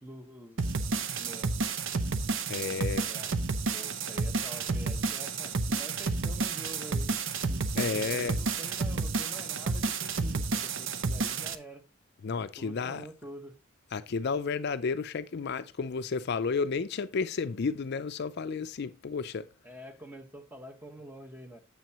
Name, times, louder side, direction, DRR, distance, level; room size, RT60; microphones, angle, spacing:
voice 1, 0.0-0.7 1.2-1.5 3.0-3.3 3.7-7.1 7.5-11.8 12.6-13.5 19.6-21.6, right 1 dB, 10° right, 1.2 m, -46 dB
sound 1, 0.6-11.5, right 4 dB, 65° right, 0.7 m, -31 dB
voice 2, 2.5-3.1 7.8-8.4 12.2-13.0 13.9-19.5, left 5 dB, 50° left, 0.4 m, -32 dB
9.2 x 7.4 x 2.9 m
head